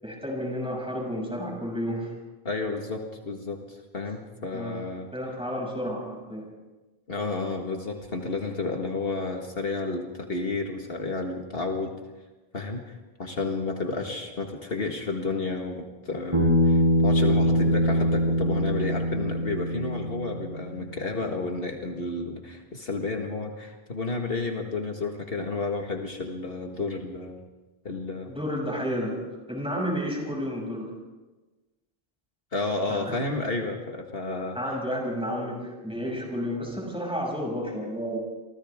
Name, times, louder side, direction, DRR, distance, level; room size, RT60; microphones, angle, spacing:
voice 1, 0.0-2.1 4.5-4.8 5.1-6.5 28.3-29.2 29.5-30.9 32.9-33.2 34.5-38.2, equal, 5° right, -2 dB, 6.8 m, -31 dB
voice 2, 2.5-5.1 7.1-11.9 12.5-12.9 13.2-27.4 27.8-28.3 32.5-34.6, left 3 dB, 65° left, 2 dB, 2.0 m, -31 dB
Bass guitar, 16.3-20.7, equal, 30° right, 5.9 m, -23 dB
30.0 x 24.5 x 3.7 m, 1.2 s
omnidirectional pair, 1.0 m